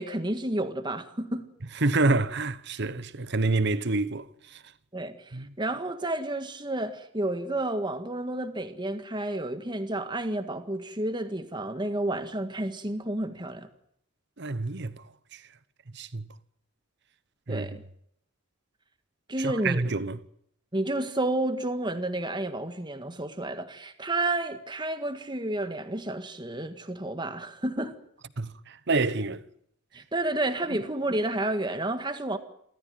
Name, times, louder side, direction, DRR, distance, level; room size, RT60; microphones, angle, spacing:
voice 1, 0.0-1.5 4.9-13.7 17.5-17.8 19.3-19.8 20.7-27.9 29.9-32.4, right 1 dB, 20° right, 1.7 m, -31 dB
voice 2, 1.8-4.6 5.3-5.5 14.4-15.0 15.3-15.4 15.9-16.3 17.5-17.7 19.4-20.2 28.4-29.4, right 3 dB, 55° right, 1.1 m, -27 dB
27.5 x 14.5 x 9.3 m
head